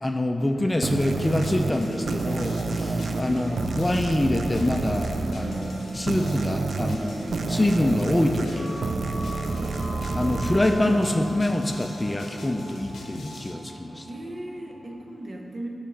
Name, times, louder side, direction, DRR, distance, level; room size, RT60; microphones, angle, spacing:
voice 1, 0.0-8.7 10.1-14.1, left 1 dB, 20° left, 4 dB, 0.4 m, -25 dB
sound 1, 0.8-12.0, right 3 dB, 65° right, 0.3 m, -29 dB
sound 2, 1.0-13.5, left 2 dB, 80° left, 0.7 m, -41 dB
sound 3, 3.3-14.9, equal, 5° right, 1.3 m, -43 dB
voice 2, 14.1-15.7, right 1 dB, 45° right, 1 dB, 0.8 m, -37 dB
5.1 x 4.8 x 5.7 m, 2.6 s
cardioid pair, 65°, 0 cm